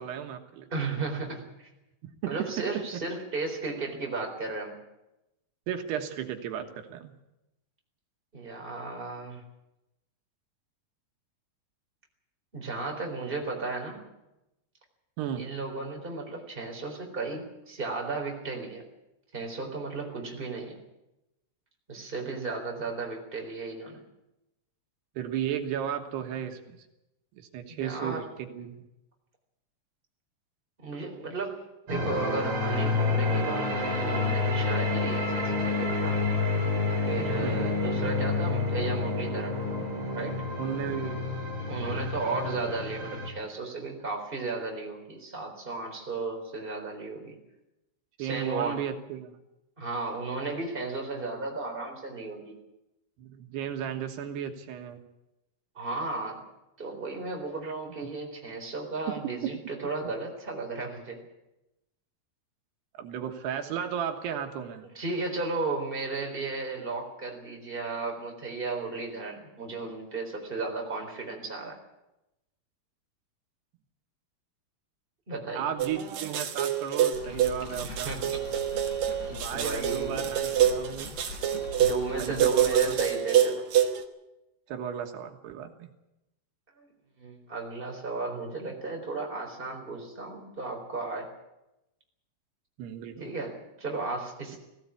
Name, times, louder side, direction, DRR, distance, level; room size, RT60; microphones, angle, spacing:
voice 1, 0.0-0.7 2.2-2.7 5.7-7.1 15.2-15.5 25.2-26.8 27.4-28.9 37.4-37.7 40.6-41.3 41.8-42.1 48.2-49.4 53.2-55.0 57.6-57.7 58.0-58.1 59.2-59.5 63.0-64.9 75.5-78.1 79.3-81.2 82.2-83.0 84.7-85.9 92.8-93.3, right 9 dB, 85° right, 5 dB, 3.4 m, -34 dB
voice 2, 0.7-1.7 2.2-4.8 8.3-9.4 12.5-14.0 15.3-18.8 19.3-20.8 21.9-24.0 27.7-28.3 30.8-31.6 31.9-36.2 37.0-39.6 40.2-40.5 41.7-47.4 48.2-48.8 49.8-52.6 55.7-56.5 56.8-61.2 64.9-71.8 75.3-75.7 77.8-78.4 79.5-80.3 81.8-83.7 86.8-86.9 87.2-91.3 93.2-94.6, right 3 dB, 15° right, 1 dB, 3.8 m, -34 dB
sound 1, 31.9-43.3, left 3 dB, 40° right, 4.4 m, -29 dB
sound 2, 75.8-84.0, right 9 dB, 60° right, 2.1 m, -26 dB
sound 3, 77.1-83.1, left 4 dB, 75° left, 5.5 m, -42 dB
19.5 x 16.5 x 8.5 m, 0.92 s
omnidirectional pair, 4.7 m